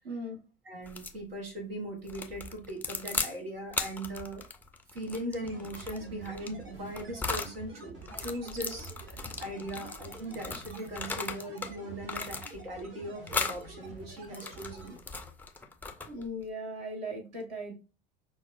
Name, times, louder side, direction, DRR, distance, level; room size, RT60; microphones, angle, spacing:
voice 1, 0.0-0.4 16.1-17.7, equal, 60° right, 0 dB, 1.3 m, -38 dB
voice 2, 0.6-4.4 4.9-15.0, right 1 dB, 80° right, 3 dB, 0.9 m, -39 dB
sound 1, 0.9-1.2 2.1-3.4 3.7-7.6 8.0-11.7 12.0-12.8 13.3-13.6 14.2-16.3, left 3 dB, 5° left, 0.3 m, -37 dB
sound 2, 5.4-15.0, right 3 dB, 40° right, 1.2 m, -48 dB
5.4 x 2.1 x 2.4 m, 0.33 s
figure-of-eight pair, 70°, 29 cm